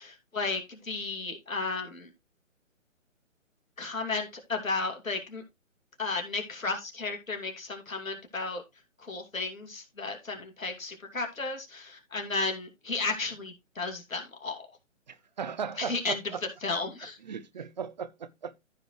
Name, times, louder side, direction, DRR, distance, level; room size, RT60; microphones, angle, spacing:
voice 1, 0.0-2.1 3.8-5.4 6.0-8.6 9.0-14.7 15.8-16.3 16.6-17.2, left 3 dB, 85° left, 2.7 m, -33 dB
voice 2, 15.1-16.4 17.3-18.6, right 6 dB, 35° right, 0.6 m, -37 dB
14.0 x 5.0 x 3.2 m
figure-of-eight pair, 140°, 39 cm